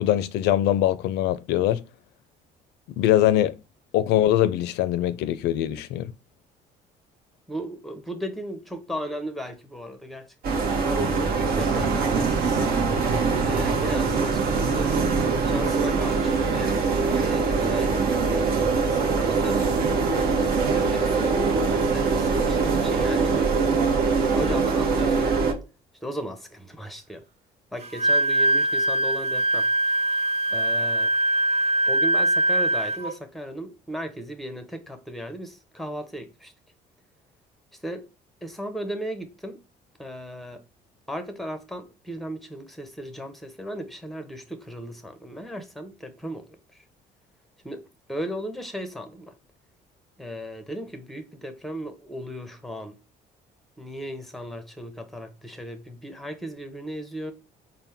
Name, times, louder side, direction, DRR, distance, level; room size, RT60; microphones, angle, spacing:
voice 1, 0.0-1.8 3.0-3.6 3.9-6.1, left 12 dB, 80° left, 0.4 m, -22 dB
voice 2, 7.5-12.3 13.1-14.9 15.4-19.8 20.1-23.8 24.3-25.4 26.0-27.2 27.7-29.7 30.5-31.1 31.9-36.5 37.8-38.1 38.4-39.6 40.0-40.6 41.1-46.8 47.6-49.3 50.2-53.0 53.8-57.3, equal, ahead, 0.7 m, -36 dB
sound 1, 10.4-25.5, right 4 dB, 65° right, 0.9 m, -23 dB
Wind instrument woodwind instrument, 27.8-33.1, right 1 dB, 40° right, 0.5 m, -22 dB
4.2 x 2.1 x 3.4 m
cardioid pair, 110°, 17 cm